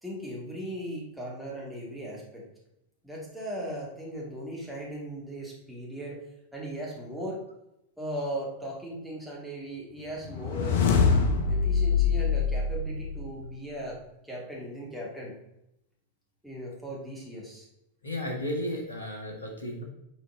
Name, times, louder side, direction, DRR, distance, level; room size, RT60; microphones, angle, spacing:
voice 1, 0.0-2.4 3.0-6.2 6.5-7.4 8.0-10.8 11.5-14.0 14.2-15.3 16.4-17.7, equal, ahead, -4 dB, 2.4 m, -38 dB
sound 1, 10.2-13.5, left 5 dB, 55° left, 0.9 m, -24 dB
voice 2, 18.0-19.8, left 1 dB, 75° left, 1 dB, 1.6 m, -33 dB
7.2 x 4.5 x 3.9 m, 0.83 s
figure-of-eight pair, 90°, 0 cm